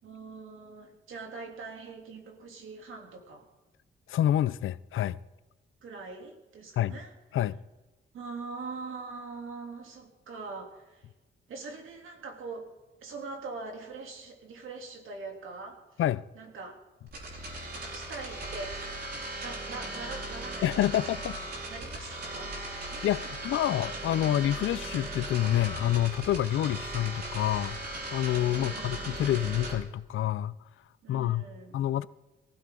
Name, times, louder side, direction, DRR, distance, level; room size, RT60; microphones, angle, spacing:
voice 1, 0.0-3.5 5.8-7.1 8.1-11.1 11.5-12.7 13.0-16.0 16.3-16.8 17.9-18.8 19.4-21.1 21.6-23.3 26.7-26.8 28.5-29.1 31.0-31.8, right 4 dB, 85° right, 3.1 m, -43 dB
voice 2, 4.1-5.2 6.8-7.0 7.3-7.6 16.0-16.2 20.6-21.4 23.0-30.6 31.1-31.4 31.7-32.1, left 12 dB, 85° left, 0.5 m, -28 dB
sound 1, 17.1-29.7, right 2 dB, 55° right, 5.4 m, -38 dB
23.5 x 15.5 x 3.8 m
wide cardioid pair, 135°, 20 cm